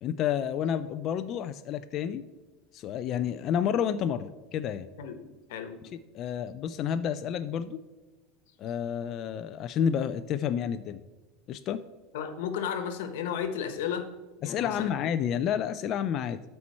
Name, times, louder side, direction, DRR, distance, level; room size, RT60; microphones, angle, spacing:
voice 1, 0.0-2.2 2.7-4.9 6.1-7.8 8.6-11.0 11.5-11.8 14.4-16.4, left 8 dB, 35° left, 10 dB, 0.3 m, -30 dB
voice 2, 5.0-5.8 12.1-14.1 14.4-14.9, left 8 dB, 85° left, 8 dB, 1.1 m, -34 dB
13.0 x 4.4 x 4.2 m, 1.2 s
supercardioid pair, 165°, 0 cm